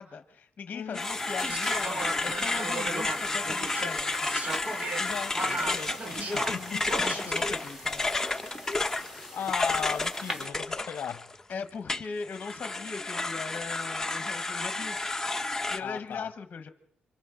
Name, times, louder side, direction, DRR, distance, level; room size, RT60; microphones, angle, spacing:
voice 1, 0.0-4.4 6.2-8.1 11.5-15.0 15.7-16.7, left 5 dB, 45° left, 1.1 m, -39 dB
voice 2, 0.7-1.1 5.0-6.8 9.3-11.3 15.8-16.3, left 8 dB, 65° left, 0.7 m, -37 dB
sound 1, 0.9-11.4 11.9-15.8, left 2 dB, 15° left, 1.0 m, -31 dB
sound 2, 1.0-10.5, left 1 dB, 15° right, 3.6 m, -44 dB
sound 3, 1.4-7.7 8.5-8.8, right 2 dB, 45° right, 2.1 m, -37 dB
27.5 x 25.0 x 3.8 m
cardioid pair, 95°, 3 cm